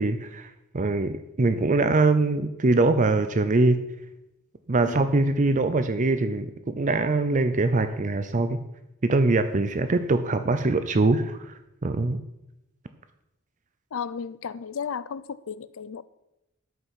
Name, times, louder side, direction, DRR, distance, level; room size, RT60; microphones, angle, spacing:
voice 1, 0.0-3.8 4.7-8.6 9.0-11.5 11.8-12.2, right 3 dB, 40° right, 9 dB, 0.6 m, -23 dB
voice 2, 13.9-16.0, left 6 dB, 80° left, 17 dB, 0.5 m, -34 dB
12.5 x 5.7 x 5.7 m, 0.91 s
head